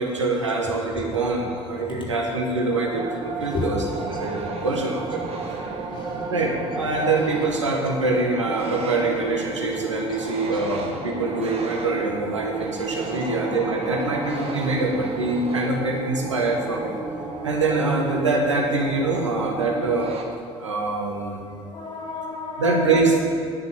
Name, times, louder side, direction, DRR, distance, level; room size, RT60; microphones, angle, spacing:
voice 1, 0.0-5.2 6.3-16.9 17.4-20.1 20.6-21.4 22.6-23.3, right 3 dB, 85° right, 0 dB, 1.5 m, -24 dB
sound 1, 2.6-20.2, right 3 dB, 40° right, 1.7 m, -33 dB
voice 2, 5.4-6.2 17.3-17.6 21.7-22.9, left 3 dB, 35° left, -3 dB, 3.2 m, -33 dB
10.0 x 7.2 x 8.4 m, 2.4 s
figure-of-eight pair, 55°, 15 cm